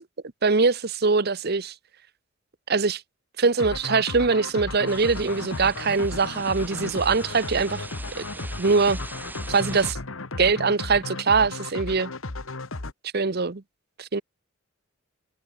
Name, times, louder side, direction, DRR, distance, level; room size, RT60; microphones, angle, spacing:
voice 1, 0.4-1.7 2.7-3.0 3.4-7.9 8.4-9.0 9.5-10.0 10.4-12.1 13.1-13.6 14.0-14.2, right 4 dB, 50° right, 0.9 m, -22 dB
sound 1, 3.6-12.9, left 2 dB, 75° left, 1.7 m, -35 dB
sound 2, 4.9-9.9, right 2 dB, 10° right, 7.2 m, -41 dB
head